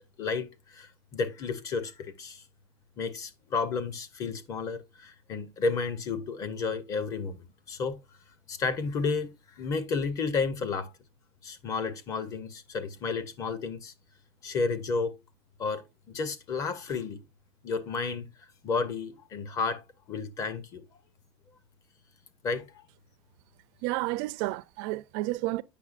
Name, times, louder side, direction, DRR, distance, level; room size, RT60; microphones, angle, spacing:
voice 1, 0.7-2.4 3.0-8.0 8.5-10.9 11.4-13.9 14.4-15.1 15.6-17.2 17.6-18.2 18.6-20.8 22.4-22.8, left 4 dB, 25° left, 0.6 m, -32 dB
voice 2, 23.8-25.6, right 19 dB, 45° right, 0.4 m, -31 dB
8.3 x 6.2 x 2.4 m
supercardioid pair, 180°, 14 cm